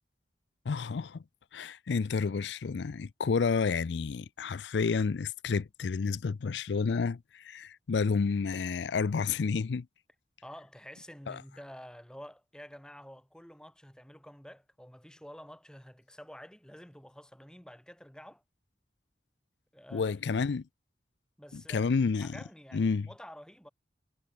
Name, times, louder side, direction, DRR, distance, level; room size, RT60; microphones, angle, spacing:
voice 1, 0.7-1.2 1.5-9.9 11.3-11.4 19.9-20.6 21.5-22.4 22.7-23.1, left 5 dB, 85° left, 0.5 m, -30 dB
voice 2, 10.4-18.4 19.7-20.4 21.4-21.9 22.2-23.7, equal, 5° left, 1.9 m, -49 dB
head